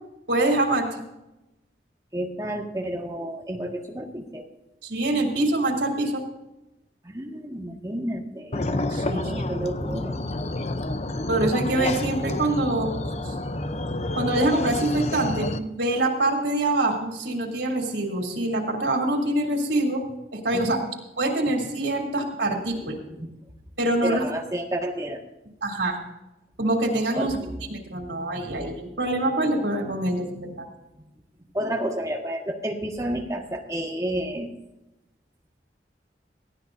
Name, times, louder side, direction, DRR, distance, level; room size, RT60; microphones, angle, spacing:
voice 1, 0.3-1.0 4.8-6.2 8.9-9.3 11.3-12.9 13.2-13.3 14.2-20.0 20.3-20.8 21.2-23.0 23.8-24.2 25.6-26.0 26.6-27.4 27.7-30.2 30.6-30.7, right 2 dB, 85° right, 1 dB, 3.3 m, -25 dB
voice 2, 2.1-4.5 7.0-8.7 9.0-10.2 20.5-20.8 23.1-23.3 24.0-25.2 27.1-27.6 28.5-28.6 30.3-30.5 31.5-34.5, right 1 dB, 20° right, 1 dB, 1.8 m, -31 dB
sound 1, 8.5-15.6, left 2 dB, 35° left, 0.7 m, -29 dB
19.5 x 15.5 x 2.7 m, 0.96 s
head